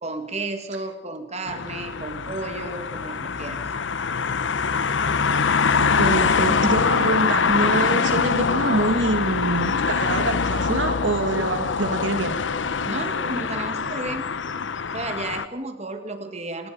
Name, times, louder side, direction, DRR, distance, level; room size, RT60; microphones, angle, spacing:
voice 1, 0.0-3.6 12.9-14.2 14.9-16.7, right 2 dB, 35° right, 7 dB, 2.3 m, -32 dB
sound 1, 1.5-15.5, left 5 dB, 80° left, 0.8 m, -24 dB
voice 2, 5.8-12.4, right 2 dB, 80° right, 8 dB, 1.6 m, -25 dB
27.5 x 19.0 x 5.3 m, 1.0 s
head